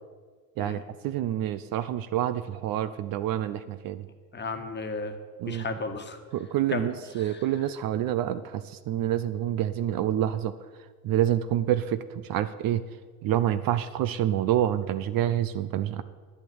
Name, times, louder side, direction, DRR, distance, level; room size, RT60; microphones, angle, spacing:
voice 1, 0.6-4.1 5.4-5.6 6.3-10.5 11.0-12.8 13.2-16.0, right 11 dB, 50° right, 13 dB, 0.7 m, -27 dB
voice 2, 4.3-5.2 5.5-6.2 6.7-6.9 7.2-7.4, left 4 dB, 25° left, 6 dB, 1.5 m, -34 dB
10.5 x 8.7 x 7.9 m, 1.5 s
hypercardioid pair, 85°, 46 cm